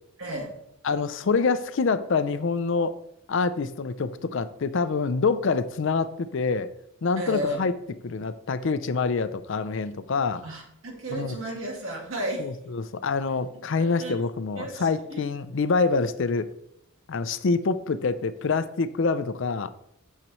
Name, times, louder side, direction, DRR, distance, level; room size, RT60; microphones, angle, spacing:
voice 1, 0.2-0.5 7.2-7.6 10.4-12.5 13.8-14.2 14.6-15.2, right 1 dB, 70° right, 0 dB, 2.3 m, -33 dB
voice 2, 0.8-3.0 3.3-6.7 7.0-7.8 8.0-10.4 11.1-11.3 12.4-16.5 17.1-19.7, left 4 dB, 60° left, 13 dB, 0.5 m, -26 dB
8.7 x 6.5 x 3.1 m, 0.75 s
head